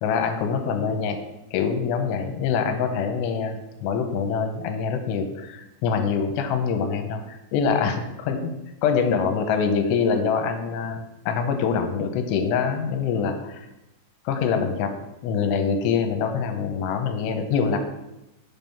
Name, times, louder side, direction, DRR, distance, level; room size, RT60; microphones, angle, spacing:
voice 1, 0.0-1.2 1.5-8.4 8.8-13.7 14.3-14.9 15.2-17.8, left 6 dB, 85° left, 6 dB, 2.8 m, -24 dB
8.0 x 5.4 x 5.7 m, 0.95 s
omnidirectional pair, 5.1 m